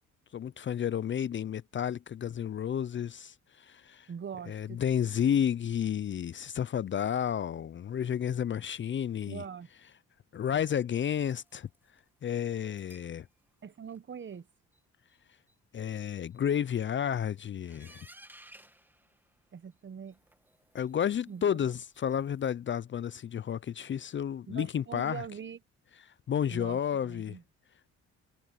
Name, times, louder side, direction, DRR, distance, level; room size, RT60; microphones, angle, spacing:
voice 1, 0.3-4.1 4.5-9.4 10.3-11.7 12.2-13.3 15.7-18.1 20.7-25.2 26.3-27.4, left 9 dB, 40° left, 0.5 m, -31 dB
voice 2, 4.1-4.8 9.3-9.7 13.6-14.5 19.5-20.2 21.3-21.7 24.5-25.6 26.5-27.4, right 7 dB, 40° right, 1.2 m, -43 dB
sound 1, 11.1-12.0 12.7-13.2 13.5-14.0 14.3-14.4 14.7-14.8 15.1-15.2 15.5-15.6 15.9-16.0 16.3-16.8 17.6-19.7 20.1-22.5, right 1 dB, 5° right, 1.9 m, -58 dB
cardioid pair, 90°, 30 cm